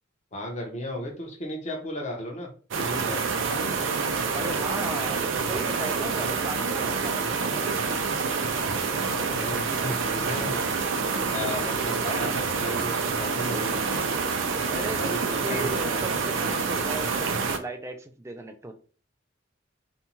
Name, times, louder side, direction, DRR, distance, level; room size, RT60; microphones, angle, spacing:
voice 1, 0.3-2.5 2.8-3.2 9.0-10.6 11.3-14.0 14.9-16.0, left 1 dB, 35° left, 0 dB, 0.8 m, -35 dB
sound 1, 2.7-17.6, right 5 dB, 80° right, 0.5 m, -27 dB
voice 2, 4.3-7.6 14.7-18.7, right 2 dB, 15° right, 6 dB, 0.3 m, -36 dB
2.7 x 2.2 x 2.9 m, 0.39 s
head